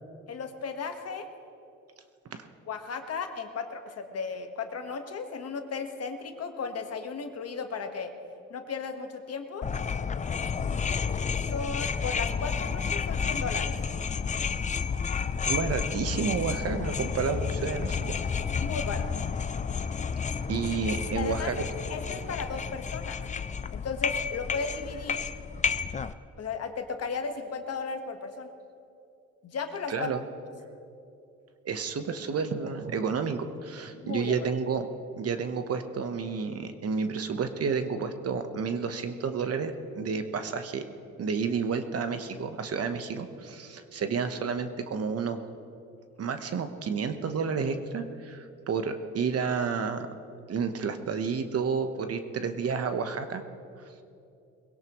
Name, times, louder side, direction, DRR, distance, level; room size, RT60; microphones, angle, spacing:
voice 1, 0.3-1.3 2.7-8.1 8.5-9.7 11.5-13.8 18.5-19.1 21.1-23.2 23.7-25.2 26.4-28.5 29.4-30.1 33.9-34.5, left 5 dB, 55° left, 6 dB, 1.4 m, -35 dB
sound 1, 9.6-26.1, left 6 dB, 25° left, 0.5 m, -31 dB
voice 2, 15.4-18.1 20.5-21.6 29.9-30.2 31.6-34.8 35.2-40.8 41.2-45.4 46.2-50.1 50.5-53.4, right 5 dB, 50° right, 8 dB, 1.1 m, -30 dB
21.5 x 17.0 x 3.1 m, 2.7 s
cardioid pair, 90°, 30 cm